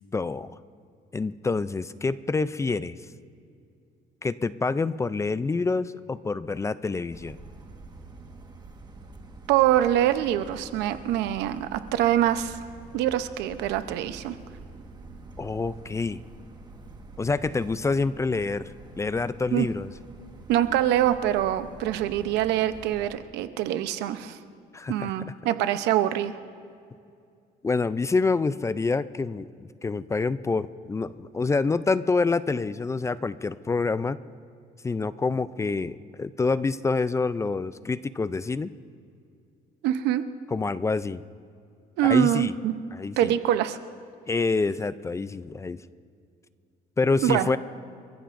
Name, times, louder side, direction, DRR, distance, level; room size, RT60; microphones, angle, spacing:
voice 1, 0.1-0.5 1.1-3.0 4.2-7.4 15.4-16.2 17.2-18.7 19.0-19.9 24.7-25.1 27.6-29.5 29.8-34.2 34.8-38.7 40.5-41.2 42.0-42.5 42.9-43.3 44.3-45.8 47.0-47.6, left 4 dB, 15° left, 15 dB, 0.4 m, -27 dB
sound 1, 7.1-23.1, right 3 dB, 25° right, 1.4 m, -46 dB
voice 2, 9.5-12.6 12.9-14.3 19.5-19.7 20.5-24.4 24.9-26.4 39.8-40.2 42.0-42.7 43.2-43.8 47.2-47.5, right 12 dB, 90° right, 11 dB, 0.7 m, -24 dB
28.5 x 14.5 x 2.6 m, 2.4 s
cardioid pair, 110°, 17 cm